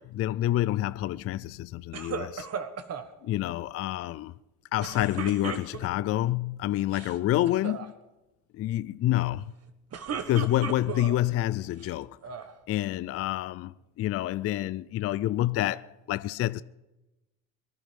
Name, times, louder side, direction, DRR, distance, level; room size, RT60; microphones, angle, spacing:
voice 1, 0.0-2.5 3.2-4.3 4.7-7.9 8.5-9.5 10.2-12.2 12.7-16.6, left 14 dB, 35° left, 0.4 m, -28 dB
sound 1, 1.9-3.1 4.8-6.1 6.8-7.2 7.4-7.9 9.7-11.2 11.8-12.5, right 7 dB, 35° right, 1.6 m, -36 dB
23.5 x 10.5 x 5.3 m
supercardioid pair, 90°, 41 cm